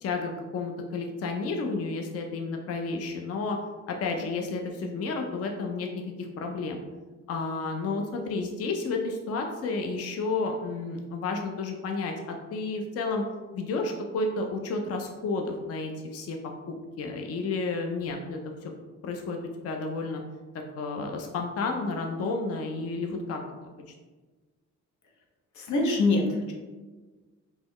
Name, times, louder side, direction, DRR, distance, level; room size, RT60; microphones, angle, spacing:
voice 1, 0.0-3.6 3.9-5.9 6.4-6.8 7.3-13.2 13.5-16.4 16.7-18.7 19.0-20.2 20.8-23.7, left 3 dB, 55° left, 3 dB, 0.5 m, -31 dB
voice 2, 25.6-26.5, left 2 dB, 75° left, 0 dB, 0.8 m, -24 dB
3.7 x 3.0 x 3.0 m, 1.3 s
cardioid pair, 120°, 30 cm